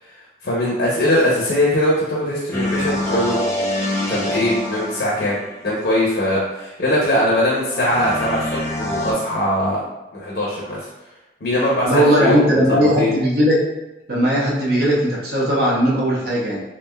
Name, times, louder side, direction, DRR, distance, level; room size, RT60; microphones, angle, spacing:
voice 1, 0.0-3.4 4.1-5.4 5.6-9.8 10.1-10.9 11.4-13.1, left 1 dB, 65° left, -5 dB, 0.6 m, -21 dB
sound 1, 2.5-5.7 7.7-9.1, left 1 dB, 15° left, 0.5 m, -25 dB
voice 2, 11.8-13.6 14.1-16.6, equal, 55° right, -5 dB, 0.8 m, -18 dB
3.2 x 2.5 x 2.2 m, 1.0 s
head